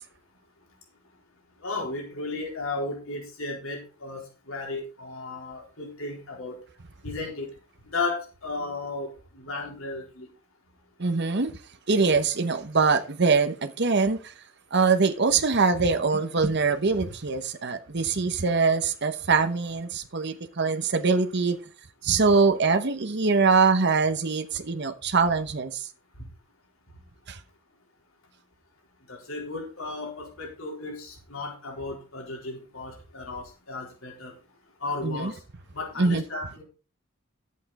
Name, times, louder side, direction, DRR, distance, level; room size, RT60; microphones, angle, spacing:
voice 1, 1.6-6.6 7.0-7.5 7.8-10.3 26.1-26.3 26.9-27.0 29.0-35.4 35.7-36.6, left 3 dB, 80° left, 4.0 m, -35 dB
voice 2, 11.0-11.5 11.9-14.3 14.7-21.6 22.0-25.9 27.3-27.4 35.0-35.3 36.0-36.2, right 4 dB, 55° right, 1.0 m, -23 dB
11.5 x 8.5 x 4.2 m
head